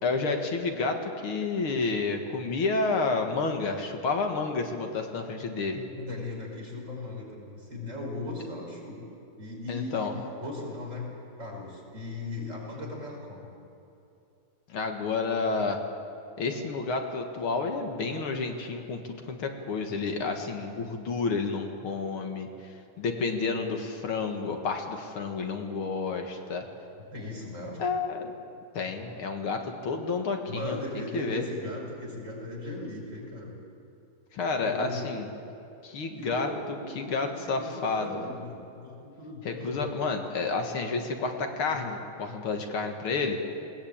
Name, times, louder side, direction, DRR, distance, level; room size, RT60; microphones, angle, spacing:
voice 1, 0.0-5.8 9.7-10.2 14.7-15.8 16.4-26.7 27.8-28.3 28.7-31.4 34.3-35.3 35.8-36.5 36.9-38.1 39.4-43.4, left 4 dB, 75° left, 4 dB, 2.4 m, -30 dB
voice 2, 6.0-9.0 9.4-10.1 10.4-11.1 11.4-13.5 27.0-27.8 30.5-33.6 34.6-35.4 36.2-39.8 41.7-41.8, left 2 dB, 35° right, -2 dB, 5.4 m, -38 dB
20.5 x 18.5 x 8.8 m, 2.8 s
omnidirectional pair, 2.4 m